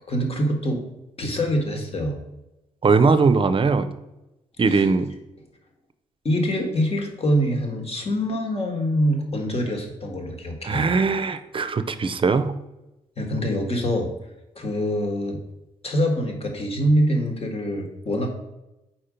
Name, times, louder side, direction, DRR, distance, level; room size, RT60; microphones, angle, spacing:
voice 1, 0.1-0.8 1.2-2.2 4.7-4.9 6.2-10.9 13.2-14.1 14.5-15.4 15.8-18.3, equal, 45° left, 3 dB, 1.5 m, -24 dB
voice 2, 2.8-3.9 4.6-5.1 10.6-12.6, right 4 dB, 35° right, 10 dB, 0.6 m, -20 dB
4.4 x 4.3 x 5.1 m, 0.96 s
supercardioid pair, 50°, 15 cm